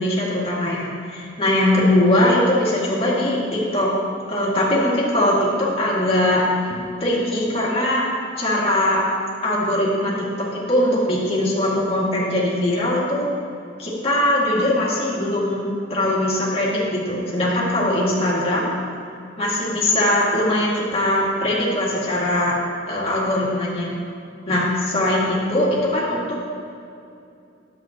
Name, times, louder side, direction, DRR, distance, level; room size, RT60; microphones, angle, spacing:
voice 1, 0.0-3.9 4.3-8.0 8.4-9.0 9.4-13.3 13.8-18.7 19.4-22.6 22.9-23.9 24.5-26.4, left 1 dB, 30° left, -6 dB, 2.2 m, -21 dB
11.0 x 8.1 x 2.9 m, 2.6 s
head